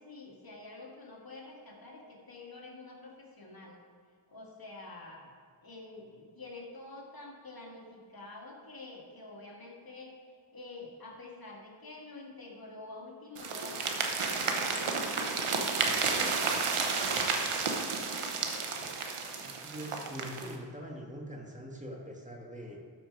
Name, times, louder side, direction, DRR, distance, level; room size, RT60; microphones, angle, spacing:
voice 1, 0.0-3.8 4.3-5.3 5.6-17.3, left 2 dB, 45° left, -2 dB, 2.1 m, -48 dB
sound 1, 13.4-20.6, right 4 dB, 80° right, 1.1 m, -32 dB
voice 2, 19.4-22.8, equal, 15° right, -1 dB, 1.7 m, -43 dB
12.5 x 4.6 x 4.7 m, 2.1 s
cardioid pair, 45°, 49 cm